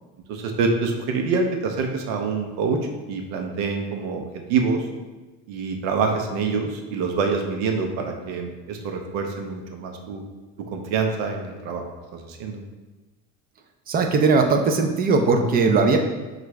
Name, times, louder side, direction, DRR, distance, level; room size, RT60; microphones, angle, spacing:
voice 1, 0.3-2.8 3.1-4.2 4.5-4.9 5.5-10.2 10.7-11.8 12.1-12.6, right 4 dB, 75° right, 3 dB, 0.7 m, -26 dB
voice 2, 13.9-16.0, right 4 dB, 25° right, 4 dB, 0.4 m, -19 dB
5.7 x 2.5 x 3.2 m, 1.2 s
cardioid pair, 130°, 36 cm